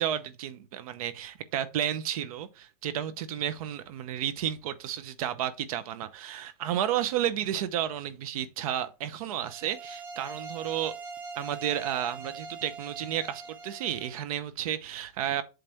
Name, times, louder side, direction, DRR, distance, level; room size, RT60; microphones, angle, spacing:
voice 1, 0.0-10.9 11.4-15.4, right 10 dB, 60° right, 0.8 m, -32 dB
sound 1, 9.4-14.2, right 4 dB, 25° right, 1.0 m, -42 dB
7.8 x 3.3 x 4.5 m
supercardioid pair, 155°, 20 cm